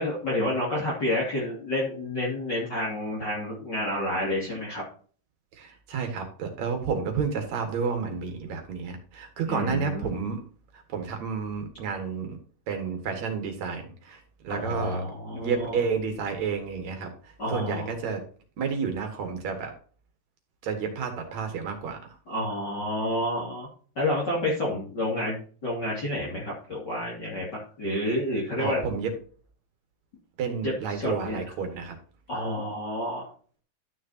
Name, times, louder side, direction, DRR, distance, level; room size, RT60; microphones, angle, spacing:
voice 1, 0.0-4.8 9.5-10.2 14.5-15.8 17.4-17.9 22.3-23.7 24.0-28.8 30.6-31.4 32.3-33.3, left 1 dB, 30° left, -6 dB, 2.8 m, -29 dB
voice 2, 5.5-10.4 10.7-12.4 12.7-15.0 15.4-17.1 17.5-18.2 18.6-19.7 20.6-22.0 28.6-29.1 30.4-32.0, right 5 dB, 55° right, 4 dB, 2.7 m, -30 dB
13.0 x 6.4 x 2.8 m, 0.42 s
omnidirectional pair, 4.1 m